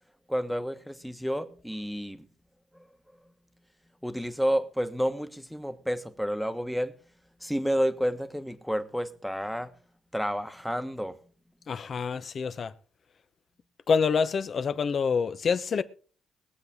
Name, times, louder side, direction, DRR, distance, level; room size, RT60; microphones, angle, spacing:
voice 1, 0.3-2.3 2.7-2.8 4.0-6.9 7.4-9.7 10.1-11.2, equal, ahead, 1.3 m, -30 dB
voice 2, 11.7-12.7 13.9-15.8, left 5 dB, 50° left, 0.9 m, -26 dB
22.0 x 7.8 x 3.6 m
cardioid pair, 90°, 0 cm